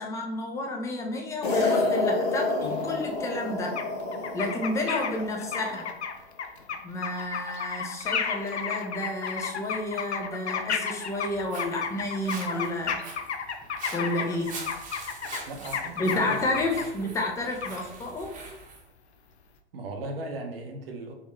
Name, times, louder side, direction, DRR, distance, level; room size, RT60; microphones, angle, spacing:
voice 1, 0.0-3.8 4.3-5.9 6.8-13.0 13.9-14.5 16.0-18.4, left 2 dB, 10° left, 1 dB, 0.4 m, -30 dB
sound 1, 1.4-5.9, left 2 dB, 40° left, 1.3 m, -29 dB
sound 2, 2.6-3.2 3.8-3.9 4.1-16.8 17.6-17.8, left 6 dB, 75° left, 0.6 m, -33 dB
Walk footsteps, 11.2-18.8, right 3 dB, 25° right, 0.9 m, -44 dB
voice 2, 15.5-16.8 19.7-21.1, right 2 dB, 55° right, 3 dB, 0.8 m, -37 dB
3.7 x 2.9 x 3.1 m, 0.90 s
figure-of-eight pair, 100°, 33 cm